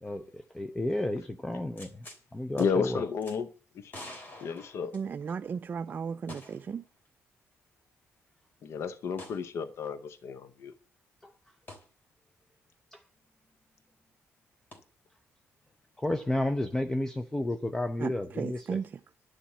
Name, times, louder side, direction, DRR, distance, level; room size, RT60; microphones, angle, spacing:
voice 1, 0.0-2.1 2.3-3.0 11.2-11.3 12.9-13.0 16.0-18.8, left 1 dB, 10° left, 0.6 m, -32 dB
sound 1, 1.8-2.2 2.6-2.7 3.2-3.4 3.9-5.4 6.3-6.7 7.0-7.1 9.2-9.4 11.7-11.9 14.7-14.8, left 1 dB, 40° left, 3.2 m, -47 dB
voice 2, 2.6-3.5 3.7-3.9 4.4-4.9 8.6-10.7, left 6 dB, 60° left, 0.7 m, -32 dB
voice 3, 4.9-6.8 18.0-18.9, right 6 dB, 40° right, 0.4 m, -35 dB
11.0 x 7.2 x 7.2 m
cardioid pair, 115°, 5 cm